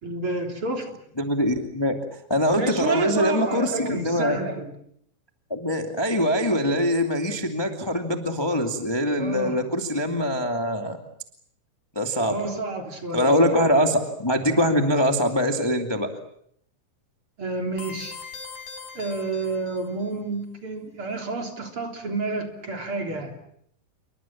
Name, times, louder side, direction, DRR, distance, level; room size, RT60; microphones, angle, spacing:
voice 1, 0.0-0.9 2.6-4.7 9.2-9.7 12.3-13.7 17.4-18.2 18.9-23.3, right 3 dB, 40° right, 4 dB, 4.2 m, -29 dB
voice 2, 1.2-2.0 2.3-4.4 5.5-11.0 12.0-12.5 13.1-16.1, equal, 10° left, 5 dB, 1.9 m, -23 dB
sound 1, 17.8-20.1, left 5 dB, 75° left, 6.0 m, -41 dB
29.0 x 24.0 x 7.4 m, 0.67 s
omnidirectional pair, 3.9 m